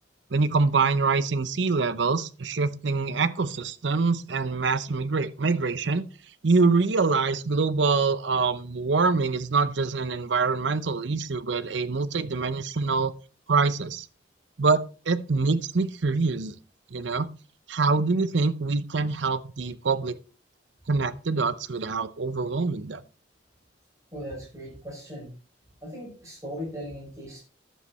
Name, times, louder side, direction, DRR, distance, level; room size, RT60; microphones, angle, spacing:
voice 1, 0.3-6.0 6.4-13.1 13.5-14.1 14.6-14.8 15.1-16.5 16.9-17.3 17.7-20.2 20.9-23.0, right 4 dB, 70° right, 13 dB, 0.7 m, -25 dB
voice 2, 24.1-25.3 25.8-27.4, equal, 15° right, -4 dB, 6.2 m, -38 dB
11.0 x 7.4 x 4.2 m, 0.36 s
head